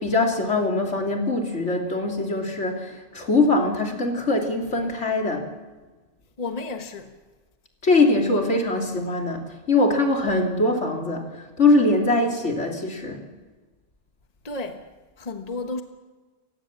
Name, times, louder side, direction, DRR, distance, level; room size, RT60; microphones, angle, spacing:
voice 1, 0.0-5.5 7.8-13.3, left 2 dB, 75° left, 3.4 m, -22 dB
voice 2, 6.4-7.1 14.4-14.9 15.2-15.8, left 3 dB, 35° left, 1.4 m, -32 dB
28.5 x 16.5 x 7.3 m
omnidirectional pair, 1.2 m